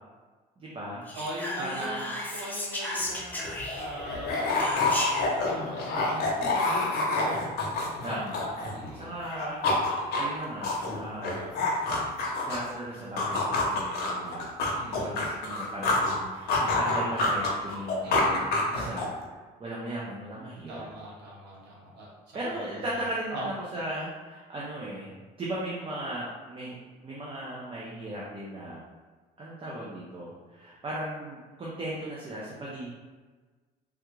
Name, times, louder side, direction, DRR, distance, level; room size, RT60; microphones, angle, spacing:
voice 1, 0.6-1.1 1.6-2.1 6.1-6.6 8.0-8.5 8.9-9.7 10.1-11.8 12.4-14.6 14.8-18.4 18.7-19.1 19.6-20.9 22.3-26.8 27.0-28.8 29.4-32.9, right 1 dB, 30° right, -6 dB, 0.6 m, -37 dB
Whispering, 1.1-4.1 4.6-5.3, left 1 dB, 10° left, 0.7 m, -34 dB
voice 2, 1.2-6.6 8.5-9.1 14.7-15.1 18.0-19.0 20.7-22.7 23.3-23.5, right 1 dB, 80° right, -5 dB, 1.2 m, -42 dB
sound 1, 3.1-3.2 3.4-8.9 9.2-12.7 13.2-16.2 16.5-19.2, left 2 dB, 70° left, 0.7 m, -28 dB
3.4 x 2.3 x 3.1 m, 1.4 s
cardioid pair, 110°, 17 cm